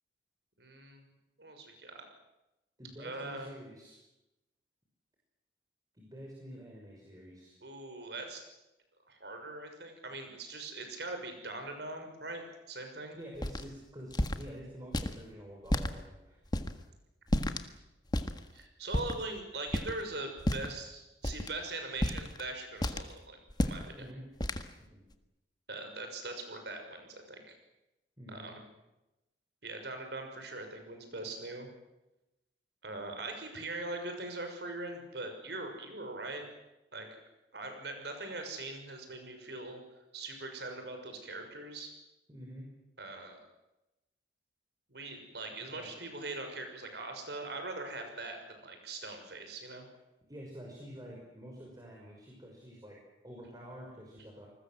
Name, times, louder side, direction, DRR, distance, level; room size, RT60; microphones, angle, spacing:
voice 1, 0.6-1.0 1.4-2.0 3.0-3.5 7.6-8.4 9.1-12.4 12.7-13.2 18.5-24.1 25.7-27.6 28.3-28.5 29.6-31.7 32.8-36.5 36.9-37.1 37.5-39.8 40.1-41.9 43.0-43.4 44.9-49.8, right 2 dB, 65° right, 5 dB, 6.4 m, -41 dB
voice 2, 2.8-3.9 5.9-7.5 13.1-16.4 23.9-24.2 24.9-25.0 28.2-28.5 42.3-42.7 45.7-45.9 50.3-53.0 53.2-54.5, equal, 20° right, -2 dB, 5.8 m, -48 dB
sound 1, 13.4-13.6 14.1-14.4 14.9-15.1 15.7-15.9 16.5-16.7 17.3-17.7 18.1-18.4 18.9-19.2 19.7-20.0 20.4-20.8 21.2-21.5 22.0-22.4 22.8-23.1 23.5-23.8 24.4-24.7, left 1 dB, 25° left, 1.6 m, -31 dB
28.5 x 20.5 x 7.9 m, 0.96 s
head